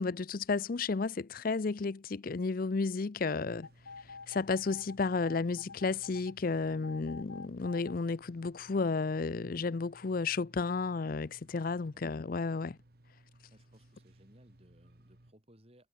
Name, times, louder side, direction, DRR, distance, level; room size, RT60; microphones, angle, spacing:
voice 1, 0.0-3.7 4.3-12.8, left 4 dB, 45° left, 0.5 m, -32 dB
sound 1, 3.6-6.3 6.8-7.9 8.4-8.5, left 4 dB, 90° left, 1.6 m, -48 dB
sound 2, 3.6-15.3, right 1 dB, 50° right, 1.7 m, -61 dB
voice 2, 13.3-15.9, equal, 30° right, 7.0 m, -63 dB
head